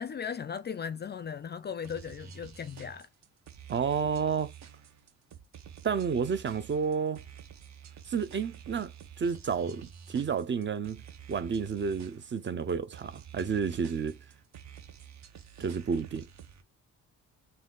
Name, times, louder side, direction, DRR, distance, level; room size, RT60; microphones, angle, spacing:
voice 1, 0.0-3.1, left 7 dB, 30° left, 0.4 m, -37 dB
sound 1, 1.8-16.6, right 8 dB, 55° right, 1.0 m, -49 dB
voice 2, 3.7-4.5 5.8-7.2 8.1-8.9 9.2-11.0 11.3-14.2 15.6-16.3, right 6 dB, 35° right, 0.6 m, -30 dB
4.0 x 2.6 x 3.8 m
cardioid pair, 115°, 33 cm